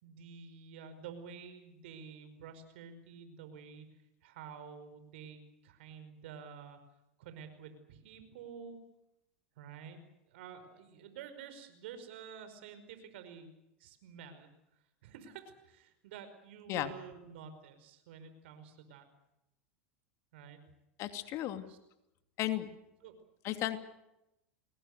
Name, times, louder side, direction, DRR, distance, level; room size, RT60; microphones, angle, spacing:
voice 1, 0.0-3.9 4.2-6.8 7.2-8.8 9.6-10.0 10.3-14.5 15.0-19.1 20.3-20.6 21.7-21.8 23.0-23.1 23.5-23.7, right 7 dB, 70° right, 9 dB, 5.3 m, -50 dB
voice 2, 21.0-21.6 22.4-22.7 23.4-23.9, left 14 dB, 50° left, 9 dB, 2.6 m, -34 dB
29.5 x 21.0 x 6.7 m, 0.88 s
hypercardioid pair, 95°, 7 cm